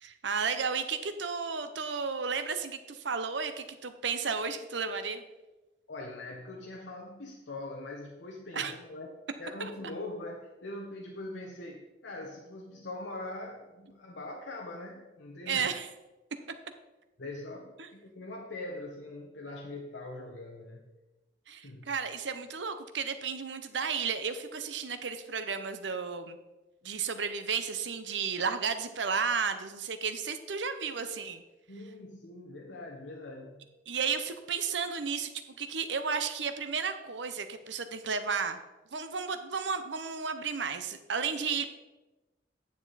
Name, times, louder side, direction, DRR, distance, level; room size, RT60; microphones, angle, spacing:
voice 1, 0.0-5.2 8.5-8.7 9.6-9.7 15.5-15.9 17.8-17.9 21.5-26.4 26.8-31.4 33.9-38.6 38.9-41.7, right 5 dB, 90° right, 9 dB, 0.8 m, -33 dB
voice 2, 5.9-9.1 9.4-15.8 17.2-20.9 21.6-22.0 31.7-33.7, left 2 dB, 85° left, 1 dB, 1.0 m, -42 dB
9.6 x 7.3 x 4.1 m, 1.1 s
head